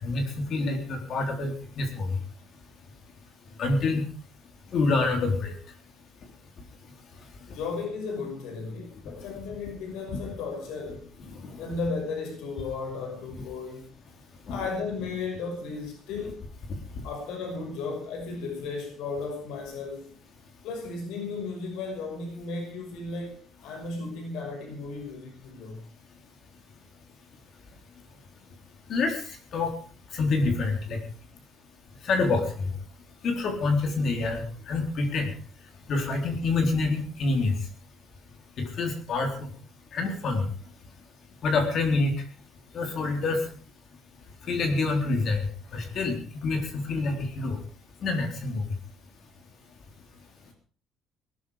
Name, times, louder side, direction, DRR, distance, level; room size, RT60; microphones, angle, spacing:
voice 1, 0.0-2.1 3.6-4.0 4.7-5.5 9.0-9.1 10.1-10.2 11.3-11.4 14.5-14.6 28.9-29.2 29.5-29.7 30.1-31.0 32.0-32.4 33.2-35.3 35.9-37.5 38.6-39.3 39.9-40.5 41.4-42.1 42.7-43.4 44.5-45.5 45.7-46.2 46.4-47.6 48.0-48.6, left 3 dB, 40° left, 3.9 m, -26 dB
voice 2, 7.5-11.1 11.6-13.9 14.5-16.4 17.0-20.1 20.6-25.9, left 4 dB, 85° left, 6.0 m, -35 dB
18.5 x 12.5 x 5.0 m
cardioid pair, 180°, 0 cm